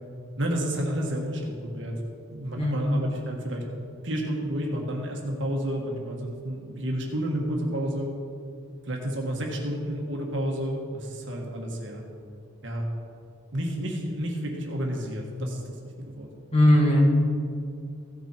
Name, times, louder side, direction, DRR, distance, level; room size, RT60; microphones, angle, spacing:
voice 1, 0.4-2.0 2.3-3.6 4.0-8.1 8.8-12.0 12.6-12.8 13.5-16.3, equal, 60° right, 0 dB, 1.6 m, -30 dB
voice 2, 2.6-2.9 16.5-17.0, left 1 dB, 30° left, -2 dB, 1.8 m, -19 dB
15.5 x 6.8 x 4.4 m, 2.4 s
head